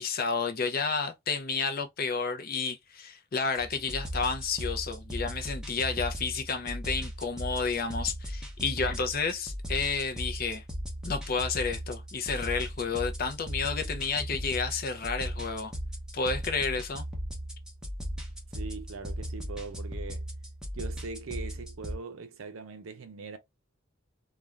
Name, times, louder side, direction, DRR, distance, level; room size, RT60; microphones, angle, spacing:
voice 1, 0.0-10.6 11.0-15.7 16.1-17.1, left 5 dB, 45° left, 0.5 m, -31 dB
sound 1, 3.5-22.0, equal, 5° right, 0.7 m, -37 dB
voice 2, 18.5-20.3 20.7-23.4, right 4 dB, 70° right, 0.6 m, -41 dB
2.4 x 2.3 x 3.1 m
head